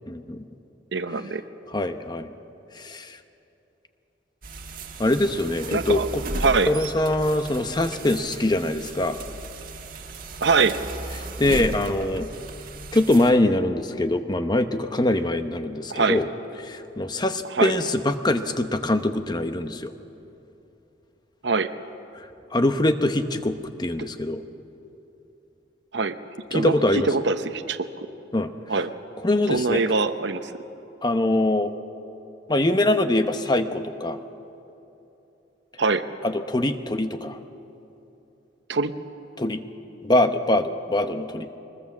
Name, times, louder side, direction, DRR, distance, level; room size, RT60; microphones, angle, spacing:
voice 1, 0.1-0.4 1.7-2.3 2.7-3.2 5.0-6.2 6.7-9.2 11.4-12.3 12.9-16.3 16.6-19.9 22.1-22.2 22.5-24.4 26.5-27.1 28.3-28.5 29.2-29.8 31.0-31.7 32.5-34.2 36.2-37.4 39.4-39.6 40.0-41.5, left 1 dB, 25° left, 8 dB, 0.9 m, -23 dB
voice 2, 0.9-1.4 5.7-6.1 6.4-6.7 10.4-10.8 15.9-16.2 17.5-17.7 21.4-21.7 24.0-24.1 25.9-26.2 26.5-27.9 28.7-28.9 29.5-30.5 35.8-36.0 38.7-38.9, right 4 dB, 65° right, 10 dB, 0.8 m, -23 dB
sound 1, 4.4-13.3, right 2 dB, 50° right, 1.6 m, -35 dB
22.5 x 20.5 x 7.3 m, 2.9 s
head